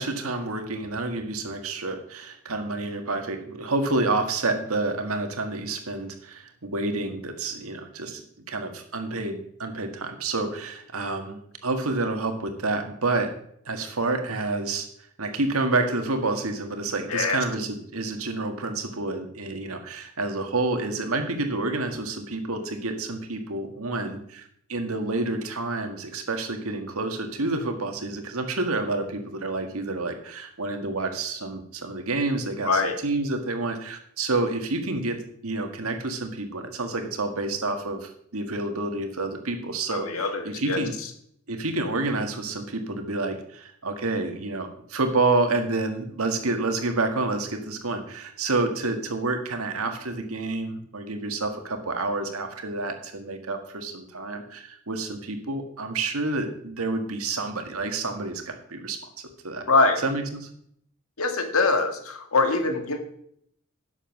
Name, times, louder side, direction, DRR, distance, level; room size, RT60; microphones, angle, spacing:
voice 1, 0.0-8.2 8.5-11.4 11.6-13.3 13.7-14.9 15.2-40.9 41.5-59.0 59.4-59.6 60.0-60.5, right 2 dB, 85° right, 6 dB, 1.7 m, -29 dB
voice 2, 17.1-17.4 32.6-33.0 39.9-40.8 59.7-60.0 61.2-63.0, left 3 dB, 85° left, 6 dB, 1.8 m, -23 dB
11.0 x 7.2 x 6.0 m, 0.68 s
head